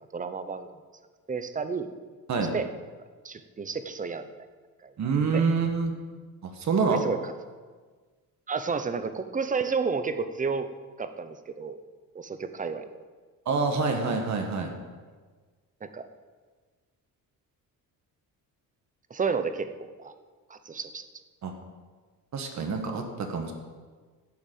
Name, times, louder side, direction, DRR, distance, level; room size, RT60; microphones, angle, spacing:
voice 1, 0.1-0.7 1.3-1.9 2.5-2.7 3.2-4.3 4.8-4.9 5.3-5.4 6.9-7.3 8.5-10.7 11.0-11.8 12.1-12.9 15.8-16.1 19.1-20.1 20.5-21.1, right 5 dB, 20° right, 10 dB, 0.7 m, -31 dB
voice 2, 5.0-5.9 6.4-7.0 13.5-14.7 21.4-21.5 22.3-23.5, right 4 dB, 50° right, 4 dB, 1.6 m, -26 dB
12.0 x 7.2 x 9.0 m, 1.5 s
cardioid pair, 150°, 35 cm